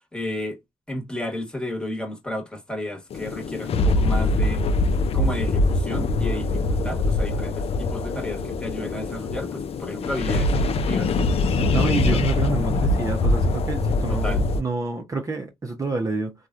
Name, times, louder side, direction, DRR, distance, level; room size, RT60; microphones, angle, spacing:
voice 1, 0.1-0.6 0.9-4.6 5.1-11.1 11.9-12.2 14.1-14.4, left 1 dB, 5° left, 1.3 m, -32 dB
sound 1, 3.1-14.6, left 2 dB, 55° left, 0.5 m, -23 dB
voice 2, 11.5-16.3, right 3 dB, 25° right, 0.7 m, -28 dB
3.0 x 2.3 x 2.5 m
cardioid pair, 70°, 12 cm